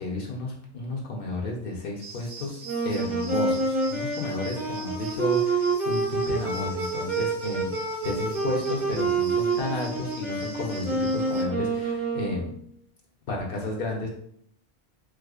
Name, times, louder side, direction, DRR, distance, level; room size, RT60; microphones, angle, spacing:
voice 1, 0.0-2.6 2.8-12.6 13.3-14.1, left 2 dB, 60° left, -1 dB, 0.9 m, -32 dB
sound 1, 2.0-11.4, right 4 dB, 50° right, 0.4 m, -44 dB
sound 2, 2.6-12.7, right 3 dB, 15° right, 0.8 m, -28 dB
4.7 x 2.1 x 2.4 m, 0.66 s
omnidirectional pair, 1.1 m